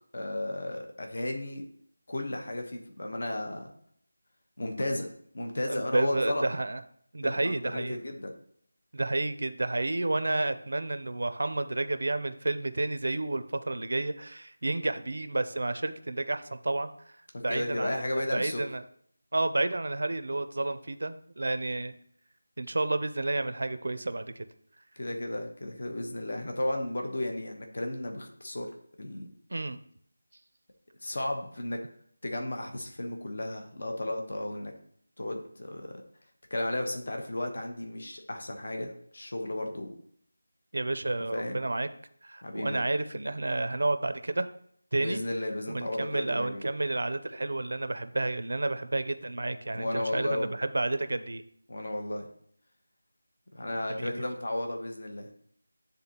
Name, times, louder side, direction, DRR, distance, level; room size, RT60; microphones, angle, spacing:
voice 1, 0.1-1.6 2.1-3.7 4.6-5.1 5.3-6.5 7.2-8.3 17.3-18.6 25.0-28.7 29.0-29.3 31.0-31.8 32.2-34.7 35.2-36.0 36.5-39.9 41.3-41.6 42.4-42.8 45.0-46.6 49.7-50.5 51.7-52.3 53.5-55.3, left 1 dB, 50° left, 3 dB, 1.0 m, -34 dB
voice 2, 5.7-6.8 7.1-8.0 8.9-16.9 17.4-18.1 18.3-18.8 19.3-21.9 22.6-24.5 29.5-29.8 40.7-41.9 42.2-44.5 44.9-45.2 45.7-51.4 53.9-54.2, right 2 dB, 60° right, 11 dB, 0.5 m, -30 dB
9.7 x 3.7 x 2.9 m, 0.65 s
figure-of-eight pair, 175°, 0 cm